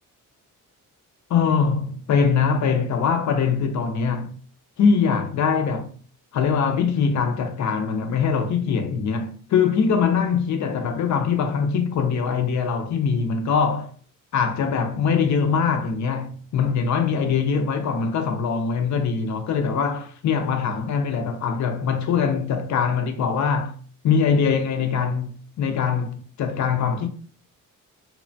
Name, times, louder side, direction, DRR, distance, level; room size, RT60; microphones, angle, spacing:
voice 1, 1.3-4.3 4.8-5.9 6.3-13.9 14.3-23.8 24.0-27.1, left 6 dB, 60° left, 0.4 m, -22 dB
2.8 x 2.1 x 2.6 m
cardioid pair, 150°, 33 cm